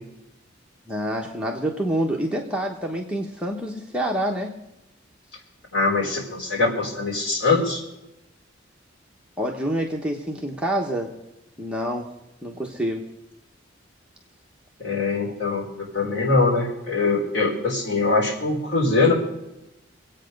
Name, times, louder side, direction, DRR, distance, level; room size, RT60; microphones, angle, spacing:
voice 1, 0.9-4.6 9.4-11.1 11.6-12.1 12.4-13.0, right 1 dB, 5° right, -1 dB, 1.0 m, -27 dB
voice 2, 5.7-7.8 14.8-15.7 15.9-19.1, left 3 dB, 55° left, -4 dB, 3.9 m, -22 dB
24.0 x 8.7 x 5.2 m, 0.92 s
head